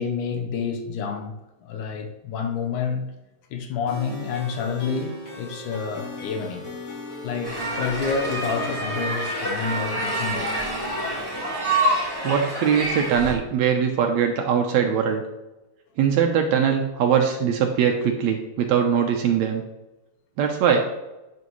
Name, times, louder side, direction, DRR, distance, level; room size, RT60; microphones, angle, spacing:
voice 1, 0.0-1.3 1.6-3.1 3.5-6.7 7.2-10.7, left 6 dB, 85° left, 2.5 m, -29 dB
sound 1, 3.9-11.3, left 1 dB, 45° left, 3.6 m, -37 dB
sound 2, 7.4-13.3, right 1 dB, 10° right, 1.3 m, -27 dB
voice 2, 12.2-15.2 16.0-19.6 20.4-20.9, right 7 dB, 75° right, 1.9 m, -21 dB
11.0 x 6.1 x 3.1 m
omnidirectional pair, 3.5 m